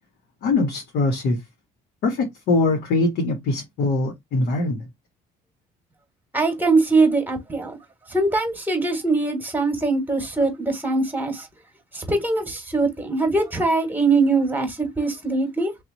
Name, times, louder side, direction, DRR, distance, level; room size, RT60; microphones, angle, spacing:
voice 1, 0.4-1.4 2.0-4.8, left 2 dB, 70° left, 1.4 m, -22 dB
voice 2, 6.3-7.8 8.1-11.5 11.9-15.7, right 3 dB, 10° right, 1.6 m, -22 dB
3.0 x 2.7 x 4.0 m
cardioid pair, 110°, 17 cm